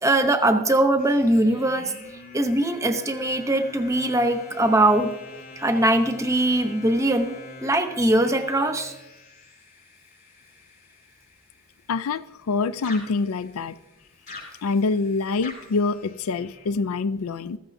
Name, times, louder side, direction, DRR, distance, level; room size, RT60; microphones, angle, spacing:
voice 1, 0.0-1.9 2.3-5.1 5.6-8.9, right 1 dB, 15° right, 0.7 m, -21 dB
sound 1, 1.0-12.5 12.8-16.7, left 3 dB, 45° left, 4.8 m, -45 dB
voice 2, 11.9-13.8 14.6-17.6, left 4 dB, 80° left, 0.5 m, -25 dB
15.0 x 14.0 x 2.7 m
head